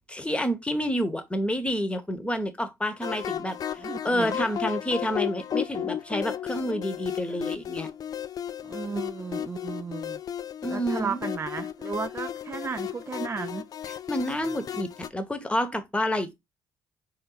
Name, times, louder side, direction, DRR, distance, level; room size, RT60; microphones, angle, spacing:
voice 1, 0.1-7.9 10.6-11.2 13.9-16.4, equal, 15° left, 0.9 m, -29 dB
sound 1, 3.0-15.1, left 10 dB, 45° left, 0.4 m, -34 dB
voice 2, 3.8-4.4 8.6-10.2 10.7-13.6, right 5 dB, 30° right, 0.4 m, -34 dB
3.9 x 2.8 x 3.8 m
hypercardioid pair, 55°, 9 cm